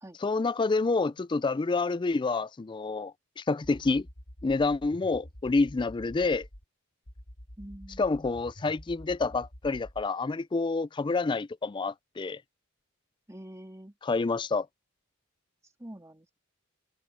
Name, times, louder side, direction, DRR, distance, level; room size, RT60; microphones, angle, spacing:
voice 1, 0.2-4.1 4.4-6.5 8.0-12.4 14.0-14.7, left 3 dB, 20° left, 0.3 m, -28 dB
sound 1, 3.6-6.6 7.1-10.1, equal, 55° left, 5.9 m, -48 dB
voice 2, 7.6-8.3 13.3-13.9 15.8-16.4, right 1 dB, 15° right, 2.1 m, -46 dB
head